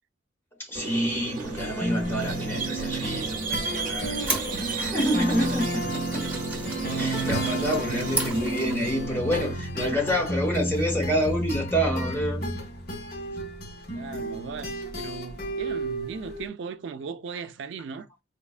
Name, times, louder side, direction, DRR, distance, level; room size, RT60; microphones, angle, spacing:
voice 1, 0.6-6.2 7.0-12.5, equal, 15° left, 1.2 m, -28 dB
Squeak, 0.7-9.5, right 4 dB, 50° right, 0.8 m, -34 dB
sound 1, 1.4-16.5, right 1 dB, 60° left, 1.1 m, -32 dB
sound 2, 4.2-9.0, right 2 dB, 10° right, 1.0 m, -36 dB
voice 2, 7.5-8.0 13.9-18.1, right 5 dB, 80° right, 0.4 m, -38 dB
4.7 x 2.3 x 2.4 m
head